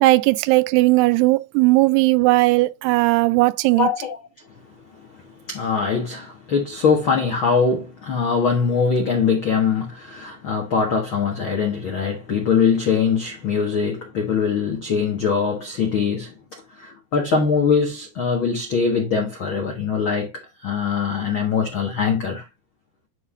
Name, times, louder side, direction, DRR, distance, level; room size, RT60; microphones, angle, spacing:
voice 1, 0.0-3.9, right 20 dB, 90° right, 2.6 m, -17 dB
voice 2, 3.8-4.2 5.5-22.5, left 5 dB, 85° left, 1.1 m, -22 dB
10.5 x 3.7 x 3.6 m
omnidirectional pair, 4.6 m